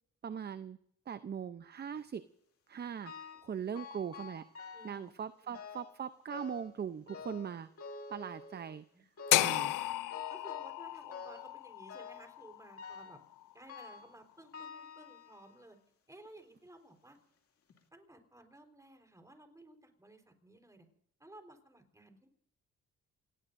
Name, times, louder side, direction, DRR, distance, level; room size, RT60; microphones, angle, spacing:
voice 1, 0.2-0.8 1.1-2.2 2.7-3.1 3.4-7.7 8.1-8.8 9.4-9.8, right 7 dB, 35° right, 13 dB, 0.7 m, -40 dB
sound 1, 3.1-3.5 3.8-5.1 5.5-6.0 6.3-6.8 7.1-8.8 9.2-9.6 10.1-10.8 11.1-11.6 11.9-12.3 12.8-13.2 13.7-14.1 14.5-15.6 16.2-16.3 17.2-17.3 17.7-17.8, left 5 dB, 50° left, 2.5 m, -48 dB
voice 2, 4.7-5.1 5.4-5.6 8.9-9.0 10.3-13.2 13.5-15.8 16.1-17.2 17.9-20.9 21.2-22.3, right 1 dB, 10° right, 5 dB, 4.1 m, -56 dB
sound 2, 9.3-13.4, left 16 dB, 85° left, 0.6 m, -33 dB
28.0 x 18.5 x 2.6 m, 0.69 s
cardioid pair, 90°, 30 cm